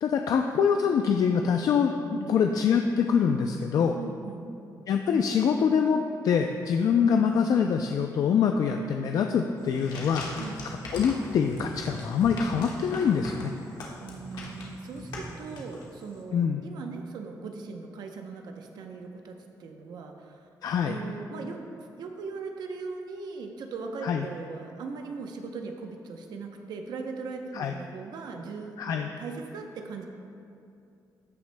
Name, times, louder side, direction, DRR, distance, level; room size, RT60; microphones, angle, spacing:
voice 1, 0.0-4.0 4.9-10.3 10.9-13.5 16.3-16.6 20.6-21.0 24.0-24.3 27.5-27.7 28.8-29.1, left 6 dB, 60° left, 4 dB, 0.4 m, -25 dB
voice 2, 3.9-4.5 10.4-10.6 14.0-20.5 20.8-21.6 22.0-30.1, right 4 dB, 75° right, 4 dB, 0.7 m, -39 dB
sound 1, 9.6-16.1, left 1 dB, 80° left, 1.4 m, -40 dB
15.0 x 6.0 x 2.2 m, 2.6 s
cardioid pair, 135°, 7 cm